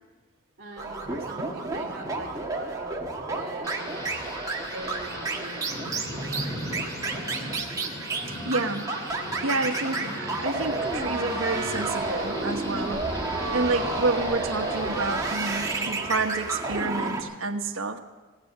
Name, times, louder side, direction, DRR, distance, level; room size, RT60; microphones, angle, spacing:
voice 1, 0.6-4.2 4.7-6.4, right 2 dB, 50° right, -7 dB, 2.2 m, -42 dB
sound 1, 0.8-17.2, right 3 dB, 15° right, 1.4 m, -31 dB
Thunder / Rain, 3.6-15.8, equal, 15° left, 2.9 m, -38 dB
voice 2, 8.5-8.9 9.4-13.0 13.5-18.0, right 3 dB, 75° right, 5 dB, 1.2 m, -29 dB
17.5 x 8.6 x 7.9 m, 1.2 s
head